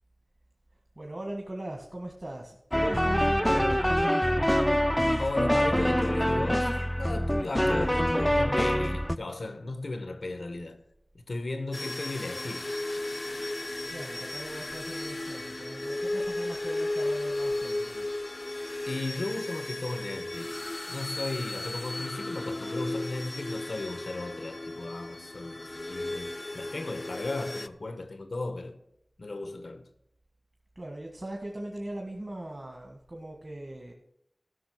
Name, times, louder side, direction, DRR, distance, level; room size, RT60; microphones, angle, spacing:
voice 1, 0.9-4.4 13.9-18.1 30.7-33.9, right 1 dB, 45° right, 1.7 m, -40 dB
sound 1, 2.7-9.2, equal, 5° left, 0.4 m, -25 dB
voice 2, 5.2-10.8 11.1-12.7 18.8-20.6 20.9-28.8 29.2-29.9, left 2 dB, 85° left, 1.1 m, -36 dB
sound 2, 11.7-27.7, left 2 dB, 50° left, 0.6 m, -35 dB
13.0 x 6.0 x 6.0 m
wide cardioid pair, 50°, 0 cm